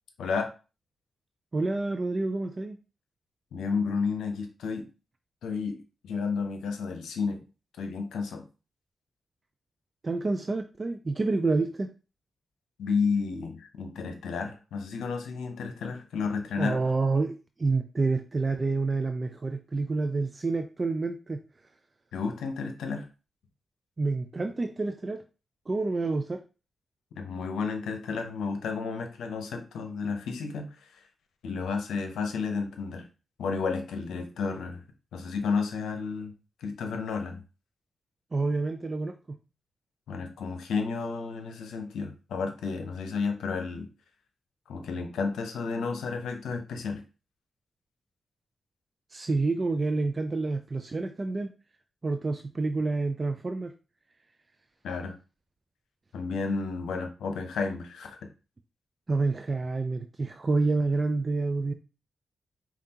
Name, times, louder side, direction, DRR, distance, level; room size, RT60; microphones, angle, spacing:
voice 1, 0.2-0.5 3.5-4.8 5.4-7.4 7.8-8.4 12.8-16.8 22.1-23.1 27.2-31.0 31.4-33.1 33.4-34.8 35.1-36.3 36.6-37.4 40.1-43.9 44.7-47.0 54.8-55.1 56.1-58.2, left 5 dB, 90° left, 6 dB, 0.7 m, -32 dB
voice 2, 1.5-2.8 10.0-11.9 16.6-21.4 24.0-25.2 25.7-26.4 38.3-39.4 49.1-51.5 52.0-53.7 59.1-61.7, right 3 dB, 40° right, 7 dB, 0.4 m, -28 dB
5.2 x 2.4 x 2.8 m, 0.32 s
cardioid pair, 50°, 0 cm